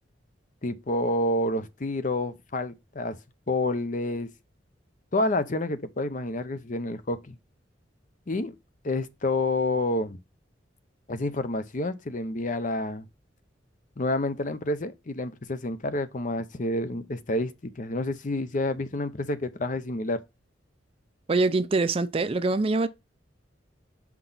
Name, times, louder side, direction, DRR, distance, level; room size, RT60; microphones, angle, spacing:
voice 1, 0.6-3.2 3.5-4.3 5.1-7.3 8.3-8.5 8.8-10.2 11.1-13.1 14.0-20.2, left 2 dB, 45° left, 0.6 m, -29 dB
voice 2, 21.3-22.9, right 3 dB, 30° right, 0.4 m, -24 dB
5.9 x 4.6 x 3.8 m
head